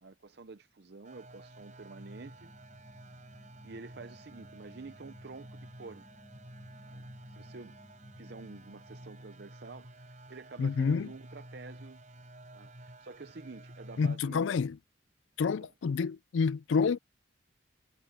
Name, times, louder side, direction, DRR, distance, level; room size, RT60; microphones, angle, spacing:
voice 1, 0.0-2.5 3.6-6.0 6.8-7.0 7.3-7.8 8.2-12.0 12.5-14.6 15.6-15.7, right 3 dB, 55° right, 0.7 m, -48 dB
sound 1, 1.0-14.2, right 1 dB, 40° right, 4.8 m, -51 dB
sound 2, 2.0-9.4, left 1 dB, 20° left, 1.3 m, -58 dB
voice 2, 10.6-11.1 14.0-14.8 15.4-17.0, left 5 dB, 75° left, 0.4 m, -28 dB
head